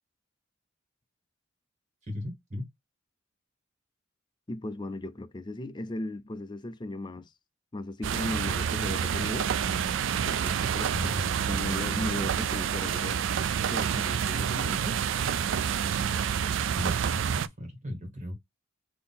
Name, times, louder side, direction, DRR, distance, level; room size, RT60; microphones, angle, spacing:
voice 1, 2.0-2.7 10.9-11.4 16.7-18.3, left 1 dB, 35° right, 1.6 m, -37 dB
voice 2, 4.5-7.3 7.7-9.5 10.2-11.1 11.5-13.2 13.7-15.0, left 2 dB, 20° left, 0.5 m, -37 dB
sound 1, 8.0-17.5, right 8 dB, 65° right, 0.4 m, -28 dB
sound 2, 9.6-12.8, right 3 dB, 5° right, 1.1 m, -48 dB
3.7 x 2.8 x 4.1 m
head